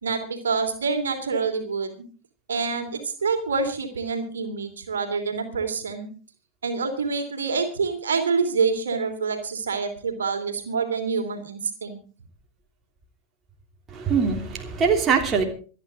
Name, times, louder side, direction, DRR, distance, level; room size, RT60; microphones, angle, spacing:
voice 1, 0.0-2.0 2.5-6.1 6.6-12.0, right 5 dB, 70° right, 5 dB, 3.1 m, -26 dB
voice 2, 13.9-15.4, right 5 dB, 25° right, 2 dB, 3.1 m, -22 dB
26.5 x 9.7 x 3.8 m, 0.40 s
figure-of-eight pair, 90°, 0 cm